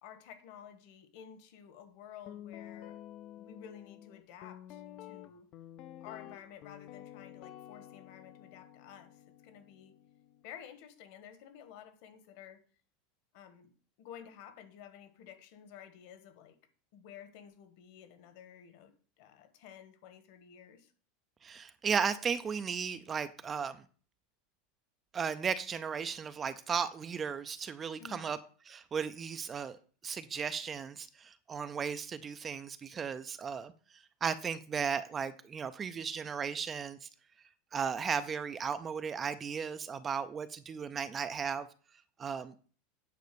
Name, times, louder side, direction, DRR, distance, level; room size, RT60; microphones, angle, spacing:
voice 1, 0.0-3.0 3.4-5.5 6.0-9.9 10.4-12.6 13.3-13.7 14.0-16.6 16.9-20.9 28.0-28.3, left 9 dB, 55° left, 1.5 m, -52 dB
Guitar, 2.3-10.4, left 12 dB, 35° left, 0.5 m, -50 dB
voice 2, 21.4-23.8 25.1-28.4 28.7-29.8 30.0-33.7 34.2-37.1 37.7-41.7 42.2-42.5, right 6 dB, 15° right, 0.4 m, -35 dB
9.3 x 5.2 x 6.9 m
supercardioid pair, 170°, 0 cm